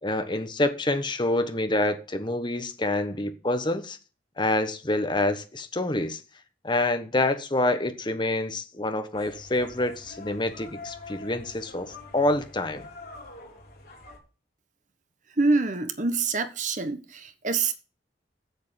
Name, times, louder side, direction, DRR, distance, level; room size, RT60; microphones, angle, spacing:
voice 1, 0.0-4.0 4.4-6.2 6.6-12.9, left 2 dB, 25° left, 1.2 m, -27 dB
sound 1, 9.1-14.2, left 3 dB, 55° left, 4.0 m, -45 dB
voice 2, 15.4-17.7, right 3 dB, 45° right, 1.2 m, -26 dB
8.2 x 7.6 x 7.5 m
head